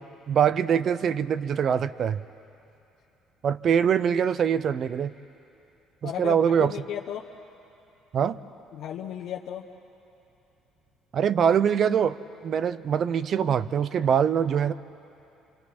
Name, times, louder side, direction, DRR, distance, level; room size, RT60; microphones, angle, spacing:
voice 1, 0.3-2.2 3.4-5.1 6.0-6.7 8.1-8.4 11.1-14.7, right 8 dB, 50° right, 15 dB, 0.6 m, -23 dB
voice 2, 6.0-7.3 8.7-9.7, left 10 dB, 70° left, -1 dB, 1.0 m, -34 dB
28.5 x 26.0 x 4.4 m, 2.8 s
cardioid pair, 110°, 0 cm